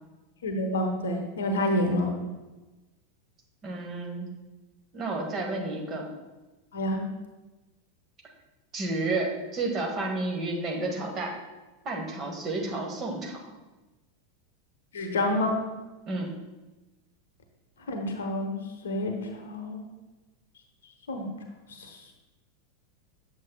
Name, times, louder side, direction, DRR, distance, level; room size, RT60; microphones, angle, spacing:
voice 1, 0.4-2.1 6.7-7.0 14.9-15.6 17.9-18.6 18.8-19.8 21.1-21.3 21.8-22.0, left 1 dB, 65° left, 3 dB, 1.0 m, -28 dB
voice 2, 3.6-4.3 4.9-6.1 8.7-11.4 11.8-13.5 16.1-16.3, right 2 dB, 30° right, 0 dB, 1.5 m, -31 dB
8.2 x 7.1 x 2.3 m, 1.1 s
figure-of-eight pair, 85°, 0 cm